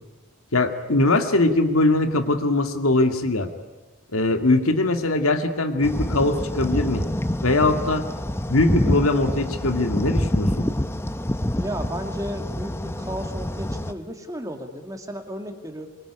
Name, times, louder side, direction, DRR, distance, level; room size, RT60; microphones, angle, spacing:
voice 1, 0.5-3.5 4.1-7.0 7.4-8.1 8.5-10.7, left 2 dB, 75° left, 6 dB, 2.1 m, -21 dB
sound 1, 5.8-13.9, left 1 dB, 10° left, 0.8 m, -27 dB
voice 2, 11.5-15.9, equal, 15° right, 5 dB, 2.2 m, -33 dB
23.5 x 23.5 x 10.0 m, 1.2 s
head